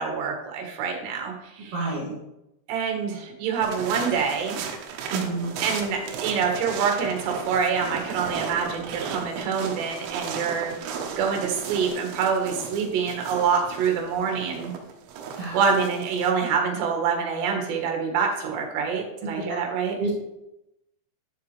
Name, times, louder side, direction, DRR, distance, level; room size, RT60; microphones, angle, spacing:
voice 1, 0.0-2.0 2.7-4.6 5.6-14.7 15.5-20.0, right 6 dB, 65° right, 1 dB, 3.3 m, -26 dB
voice 2, 1.7-2.2 5.1-5.5 15.4-15.6 19.5-19.6 20.0-20.2, right 3 dB, 45° right, -6 dB, 1.9 m, -28 dB
sound 1, 3.6-16.3, right 6 dB, 85° right, 3.3 m, -35 dB
11.0 x 7.0 x 3.3 m, 0.89 s
omnidirectional pair, 5.7 m